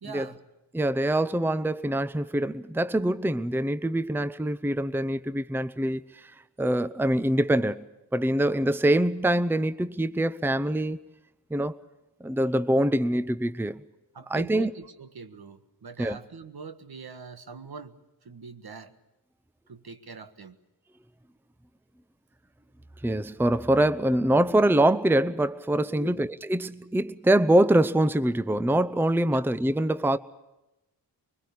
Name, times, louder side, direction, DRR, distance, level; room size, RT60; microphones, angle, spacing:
voice 1, 0.0-0.4 14.1-18.0 18.2-18.9 19.7-20.6 25.9-26.3 29.3-29.4, right 4 dB, 60° right, 1.5 m, -43 dB
voice 2, 0.7-6.3 6.6-7.8 8.1-11.0 11.5-11.8 12.2-13.8 14.3-14.7 16.0-16.2 23.0-30.2, right 1 dB, 5° right, 0.7 m, -24 dB
23.5 x 20.5 x 8.5 m
cardioid pair, 45°, 42 cm